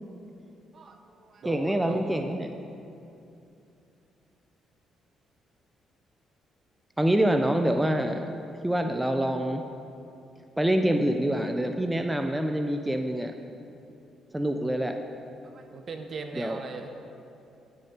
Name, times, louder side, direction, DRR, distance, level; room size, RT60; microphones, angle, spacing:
voice 1, 0.7-2.3 15.4-16.9, right 3 dB, 50° right, 5 dB, 1.2 m, -40 dB
voice 2, 1.5-2.5 7.0-8.2 8.6-9.6 10.6-13.3 14.3-14.9 16.3-16.6, right 1 dB, 10° right, 5 dB, 0.6 m, -26 dB
17.0 x 6.6 x 4.4 m, 2.7 s
cardioid pair, 90°, 0 cm